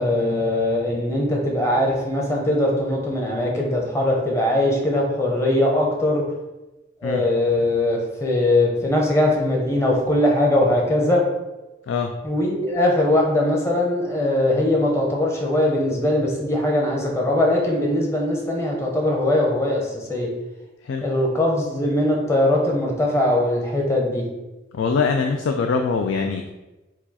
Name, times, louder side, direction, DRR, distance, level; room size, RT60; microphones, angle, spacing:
voice 1, 0.0-6.2 7.0-11.2 12.2-20.3 21.0-24.2, left 1 dB, 15° left, -1 dB, 0.7 m, -21 dB
voice 2, 11.8-12.2 20.8-21.1 24.7-26.5, left 5 dB, 85° left, 4 dB, 0.4 m, -23 dB
4.8 x 2.3 x 4.1 m, 1.0 s
head